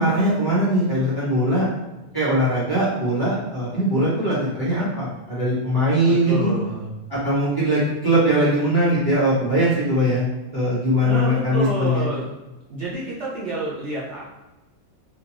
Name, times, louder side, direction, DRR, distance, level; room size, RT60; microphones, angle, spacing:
voice 1, 0.0-1.6 2.1-6.5 7.1-12.1, equal, 15° left, -10 dB, 1.3 m, -21 dB
voice 2, 6.3-7.0 11.0-12.3 12.7-14.2, right 2 dB, 55° right, -6 dB, 1.1 m, -28 dB
3.6 x 2.7 x 2.9 m, 1.0 s
omnidirectional pair, 1.5 m